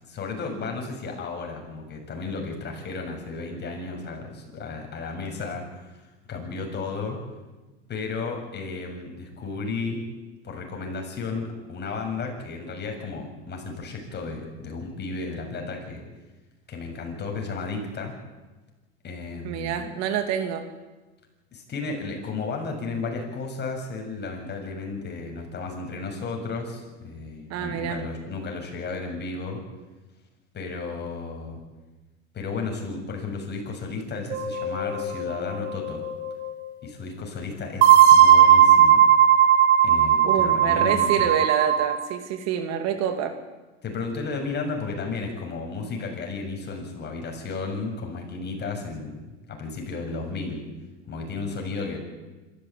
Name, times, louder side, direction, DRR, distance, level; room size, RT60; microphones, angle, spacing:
voice 1, 0.0-7.2 7.9-10.0 10.4-16.0 16.7-18.1 19.0-19.8 21.5-29.6 30.5-31.6 32.3-36.0 36.8-39.0 39.8-41.3 43.8-50.6 51.1-52.0, left 4 dB, 30° left, 2 dB, 7.1 m, -33 dB
voice 2, 19.4-20.7 27.5-28.0 40.2-43.3, right 9 dB, 55° right, 7 dB, 2.6 m, -27 dB
sound 1, 34.3-36.6 37.8-42.0, right 9 dB, 75° right, 3.6 m, -18 dB
26.0 x 14.5 x 8.6 m, 1.2 s
hypercardioid pair, 95°, 33 cm